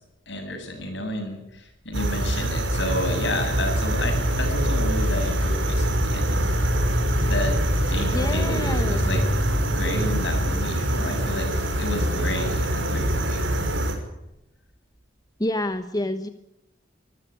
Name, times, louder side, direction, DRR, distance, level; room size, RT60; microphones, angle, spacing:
voice 1, 0.3-6.6 7.2-7.6 7.9-9.2 9.7-13.4, left 1 dB, 70° left, 5 dB, 7.7 m, -31 dB
sound 1, 1.9-13.9, equal, 80° right, 5.4 m, -24 dB
voice 2, 8.1-9.0 15.4-16.3, left 1 dB, 20° left, 9 dB, 1.2 m, -28 dB
25.0 x 14.5 x 9.9 m, 0.90 s
head